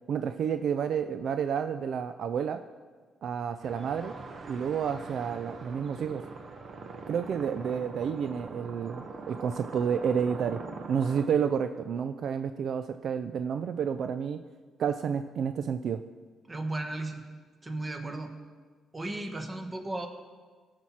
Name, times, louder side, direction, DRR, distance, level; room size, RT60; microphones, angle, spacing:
voice 1, 0.1-2.6 3.2-4.1 4.5-6.2 7.1-10.6 10.9-14.4 14.8-16.0, right 7 dB, 65° right, 9 dB, 0.4 m, -30 dB
sound 1, 3.6-11.3, right 4 dB, 45° right, 0.9 m, -43 dB
voice 2, 16.5-17.2 17.6-18.3 18.9-20.1, right 2 dB, 25° right, 5 dB, 1.4 m, -35 dB
16.5 x 6.0 x 4.2 m, 1.5 s
cardioid pair, 90°, 0 cm